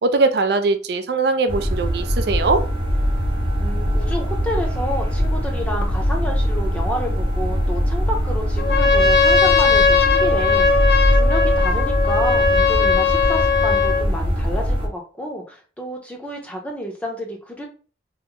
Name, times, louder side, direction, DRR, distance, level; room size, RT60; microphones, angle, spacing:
voice 1, 0.0-2.6, right 3 dB, 65° right, 0.4 m, -20 dB
sound 1, 1.5-14.9, equal, 30° right, 0.9 m, -21 dB
voice 2, 3.6-17.7, equal, 10° left, 0.6 m, -29 dB
Trumpet, 8.6-14.1, left 5 dB, 60° left, 0.5 m, -18 dB
3.1 x 2.0 x 3.5 m
head